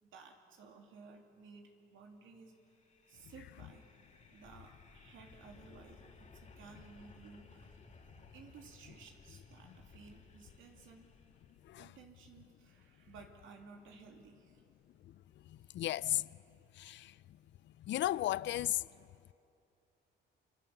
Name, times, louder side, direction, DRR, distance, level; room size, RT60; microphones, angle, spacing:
voice 1, 0.0-2.8 3.1-7.8 8.3-11.1 11.8-14.7 15.7-15.8 16.4-16.5, right 4 dB, 80° right, 2.9 m, -57 dB
sound 1, 2.6-11.8, left 4 dB, 35° left, 2.6 m, -60 dB
voice 2, 15.7-16.2 16.8-17.1 17.9-18.8, left 14 dB, 65° left, 0.5 m, -34 dB
25.5 x 25.0 x 7.1 m
cardioid pair, 90°, 20 cm